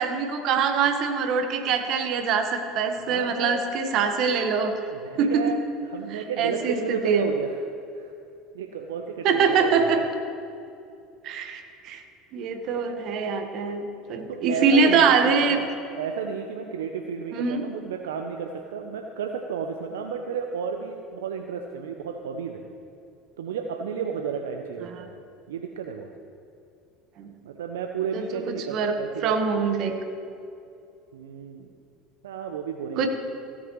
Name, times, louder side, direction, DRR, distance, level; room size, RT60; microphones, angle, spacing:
voice 1, 0.0-4.8 5.2-5.6 6.1-7.3 9.2-10.0 11.2-12.0 12.3-15.6 17.3-17.6 24.8-25.0 27.2-27.3 28.1-29.0 29.2-29.9 33.0-33.1, right 5 dB, 55° right, 6 dB, 1.3 m, -24 dB
voice 2, 3.0-3.6 4.9-7.5 7.9-8.1 8.5-10.0 14.3-15.7 16.0-22.6 23.4-25.1 25.5-26.1 27.4-29.4 31.1-31.7 32.2-33.1, right 6 dB, 80° right, 4 dB, 0.6 m, -32 dB
16.5 x 8.1 x 3.1 m, 2.6 s
hypercardioid pair, 75°, 0 cm